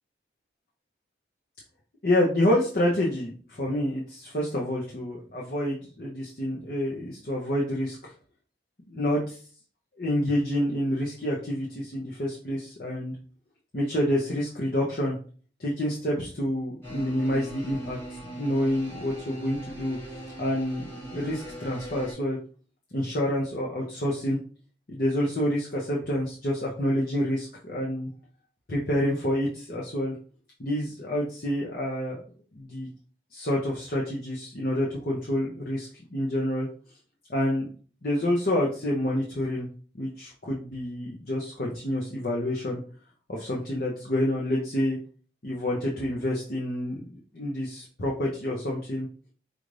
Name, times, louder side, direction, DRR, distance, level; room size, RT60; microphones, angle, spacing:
voice 1, 2.0-8.1 8.9-9.4 10.0-13.1 13.7-15.2 15.6-18.0 18.3-20.0 20.4-22.4 22.9-24.4 24.9-28.1 28.7-30.1 30.6-32.2 32.5-32.9 33.3-36.7 37.3-37.7 38.0-39.7 39.9-42.8 43.3-45.0 45.4-49.1, left 1 dB, 50° left, -3 dB, 0.8 m, -28 dB
sound 1, 16.8-22.1, right 1 dB, 15° left, 1.9 m, -40 dB
4.9 x 2.6 x 3.2 m, 0.41 s
head